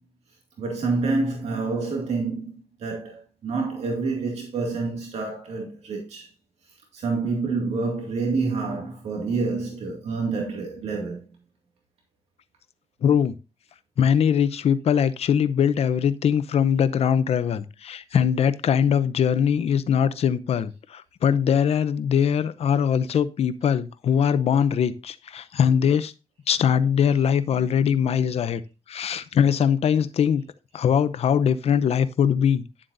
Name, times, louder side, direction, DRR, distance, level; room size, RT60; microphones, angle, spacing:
voice 1, 0.6-6.3 6.9-11.2 29.6-29.7, right 3 dB, 85° right, 2.1 m, -28 dB
voice 2, 13.0-13.3 14.0-26.1 26.5-28.6 28.9-30.4 30.7-32.6, left 8 dB, 70° left, 0.7 m, -21 dB
11.0 x 7.4 x 2.6 m
wide cardioid pair, 115°, 11 cm